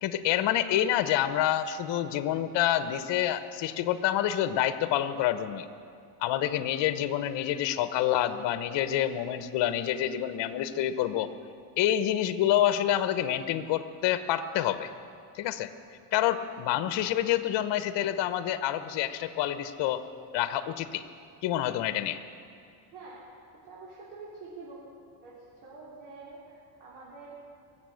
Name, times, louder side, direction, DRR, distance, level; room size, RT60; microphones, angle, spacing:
voice 1, 0.0-5.7 6.2-11.3 11.8-14.9 15.3-15.7 16.1-20.0 20.3-21.0 21.4-22.2, left 11 dB, 60° left, 11 dB, 1.0 m, -27 dB
voice 2, 23.6-24.8 25.2-25.3 25.6-27.3, right 3 dB, 75° right, -7 dB, 3.9 m, -46 dB
23.5 x 7.8 x 6.4 m, 2.3 s
supercardioid pair, 100°, 49 cm